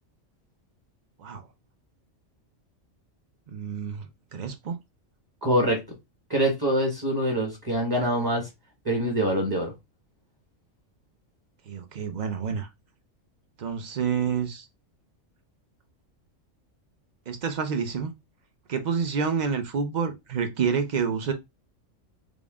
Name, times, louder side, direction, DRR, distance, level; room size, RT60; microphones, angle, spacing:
voice 1, 3.5-4.7 11.7-12.7 13.6-14.7 17.3-18.1 18.7-21.3, right 6 dB, 50° right, 0.5 m, -28 dB
voice 2, 5.4-5.8 6.3-8.5 8.8-9.7, equal, 20° right, 0.9 m, -24 dB
3.6 x 2.5 x 3.4 m
omnidirectional pair, 1.4 m